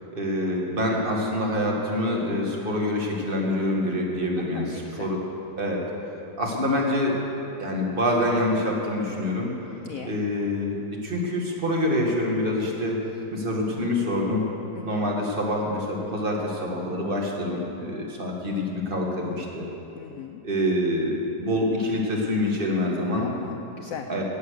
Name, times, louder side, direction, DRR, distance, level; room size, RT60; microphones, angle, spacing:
voice 1, 0.1-5.2 5.6-5.8 6.4-7.3 7.6-9.5 10.0-10.8 11.0-13.0 13.3-14.4 14.9-19.7 20.4-23.3 24.1-24.2, left 1 dB, 30° right, -1 dB, 1.9 m, -26 dB
voice 2, 4.4-5.1 9.8-10.1 14.7-15.1 19.9-20.4 23.2-24.1, left 9 dB, 80° left, 7 dB, 0.7 m, -39 dB
17.5 x 8.1 x 6.5 m, 3.0 s
omnidirectional pair, 2.0 m